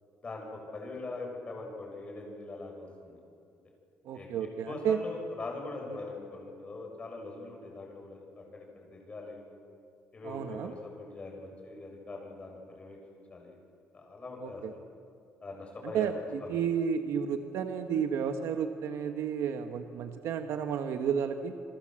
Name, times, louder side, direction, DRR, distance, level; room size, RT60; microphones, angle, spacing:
voice 1, 0.2-3.2 4.1-4.3 4.7-9.4 10.1-13.6 13.9-14.8 15.4-16.1 16.4-16.6, left 3 dB, 25° left, 0 dB, 6.5 m, -42 dB
voice 2, 4.0-5.0 10.2-10.7 14.4-14.7 15.8-21.5, right 7 dB, 75° right, 7 dB, 1.3 m, -32 dB
29.0 x 23.5 x 7.7 m, 2.5 s
cardioid pair, 150°, 5 cm